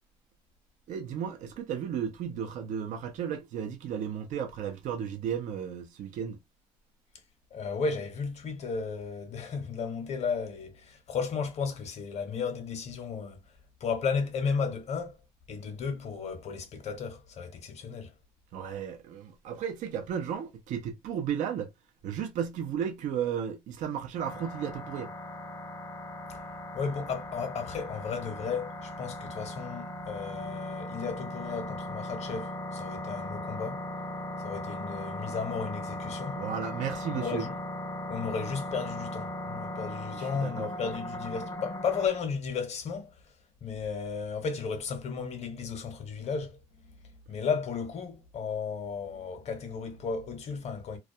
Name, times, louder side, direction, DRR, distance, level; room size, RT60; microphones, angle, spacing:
voice 1, 0.9-6.4 18.5-21.7 22.0-25.1 36.3-37.4 40.1-40.7, right 8 dB, 65° right, 0.5 m, -34 dB
voice 2, 7.5-13.5 13.8-15.2 15.5-18.1 26.3-26.4 26.7-33.8 34.4-36.4 37.1-37.6 38.1-43.3 43.6-51.0, left 5 dB, 55° left, 0.9 m, -34 dB
sound 1, 24.2-42.1, left 1 dB, 20° left, 0.6 m, -38 dB
2.3 x 2.1 x 2.6 m
supercardioid pair, 75°, 14 cm